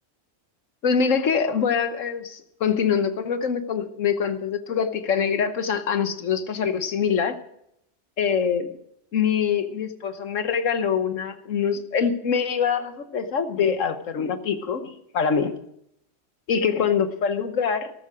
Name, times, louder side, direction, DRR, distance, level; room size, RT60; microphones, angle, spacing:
voice 1, 0.8-7.4 8.2-8.7 9.1-15.5 16.5-17.9, left 6 dB, 85° left, 10 dB, 1.4 m, -24 dB
14.0 x 13.0 x 4.9 m, 0.76 s
omnidirectional pair, 1.3 m